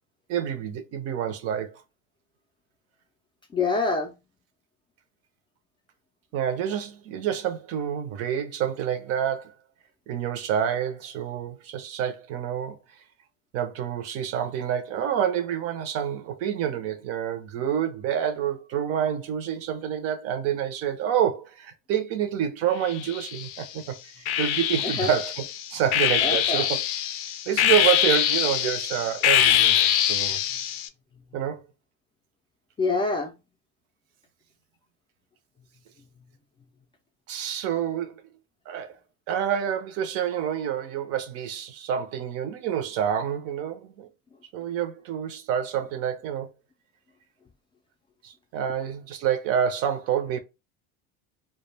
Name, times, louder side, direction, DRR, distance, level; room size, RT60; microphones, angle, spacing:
voice 1, 0.3-1.8 6.3-9.5 10.1-12.8 13.5-25.4 25.7-26.8 27.5-30.4 31.3-31.6 37.3-38.2 38.7-39.0 39.3-44.1 44.5-46.5 48.2-50.4, right 9 dB, 55° right, 0.5 m, -28 dB
voice 2, 3.5-4.1 24.8-25.1 26.2-26.7 32.8-33.3, left 3 dB, 15° left, 0.4 m, -26 dB
sound 1, 22.9-23.6 24.3-30.9, left 11 dB, 85° left, 0.5 m, -24 dB
2.3 x 2.1 x 3.2 m
supercardioid pair, 125°, 29 cm